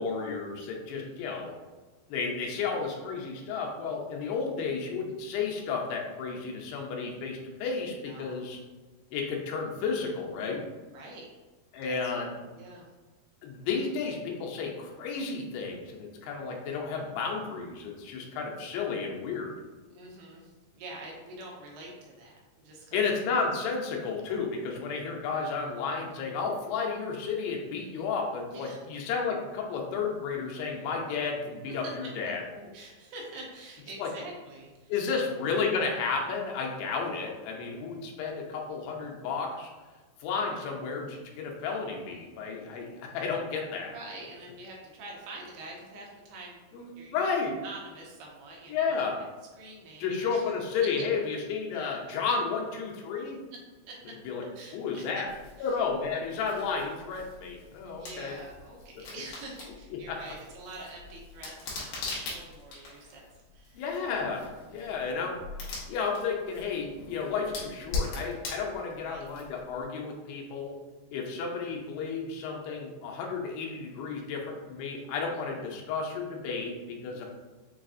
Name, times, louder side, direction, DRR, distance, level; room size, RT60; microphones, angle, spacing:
voice 1, 0.0-1.6 2.1-8.6 9.1-10.6 11.7-12.3 13.4-19.6 22.9-32.4 34.0-34.1 34.9-39.7 40.2-43.9 46.7-47.6 48.7-49.2 50.0-53.4 54.3-54.4 54.7-55.3 55.6-58.4 59.9-60.2 63.8-65.4 65.9-70.8 71.1-77.3, left 5 dB, 85° left, 0 dB, 2.8 m, -32 dB
voice 2, 0.9-1.5 8.0-8.4 10.9-11.3 11.8-12.9 19.9-23.1 27.9-28.0 28.5-28.8 31.7-35.2 40.4-40.6 43.9-49.1 49.6-50.5 50.8-51.0 51.7-52.3 53.5-53.6 53.9-54.1 54.6-55.2 55.6-55.9 57.9-63.2 63.5-63.8 64.6-65.1 69.0-69.3 77.1-77.3, right 2 dB, 85° right, -2 dB, 2.8 m, -46 dB
sound 1, 55.3-69.8, left 3 dB, 70° left, 2.3 m, -41 dB
6.7 x 2.4 x 2.5 m, 1.3 s
omnidirectional pair, 4.6 m